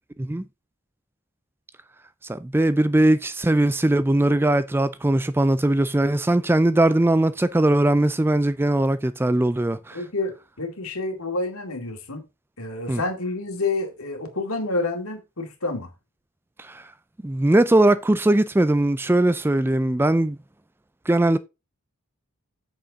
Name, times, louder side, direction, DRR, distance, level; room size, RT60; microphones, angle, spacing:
voice 1, 2.3-10.0 12.9-13.0 16.6-16.8 17.2-20.4 21.1-21.4, right 1 dB, 10° right, 0.3 m, -20 dB
voice 2, 9.9-12.2 12.6-15.9, left 2 dB, 75° left, 2.3 m, -29 dB
8.4 x 6.9 x 3.6 m
head